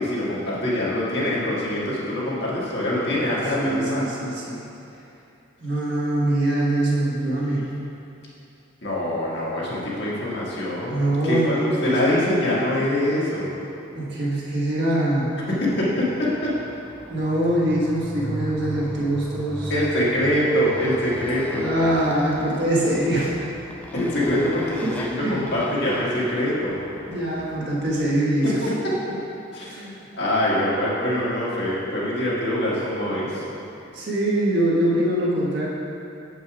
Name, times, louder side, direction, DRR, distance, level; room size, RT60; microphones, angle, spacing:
voice 1, 0.0-4.1 8.8-11.5 11.8-13.5 15.5-16.5 19.7-21.7 23.9-26.9 28.4-28.7 29.5-33.4, left 1 dB, 55° left, -7 dB, 1.8 m, -24 dB
voice 2, 3.5-4.6 5.6-7.7 10.9-12.1 13.9-15.3 17.1-19.7 21.6-23.3 24.3-24.4 24.8-24.9 25.2-25.4 27.1-28.6 29.6-29.9 33.9-35.7, right 1 dB, 55° right, -6 dB, 1.6 m, -23 dB
Motorcycle, 15.5-28.3, equal, 10° left, 0.4 m, -38 dB
7.2 x 5.5 x 4.9 m, 2.7 s
head